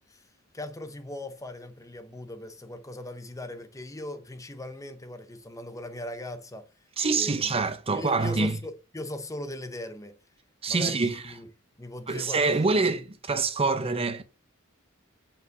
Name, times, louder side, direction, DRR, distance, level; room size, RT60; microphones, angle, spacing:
voice 1, 0.5-6.7 7.1-7.5 7.9-10.2 10.7-11.5 11.8-13.0, left 1 dB, 15° left, 0.8 m, -39 dB
voice 2, 7.0-8.6 10.6-11.3 12.1-14.2, right 3 dB, 30° right, 0.6 m, -26 dB
7.4 x 5.6 x 4.5 m
head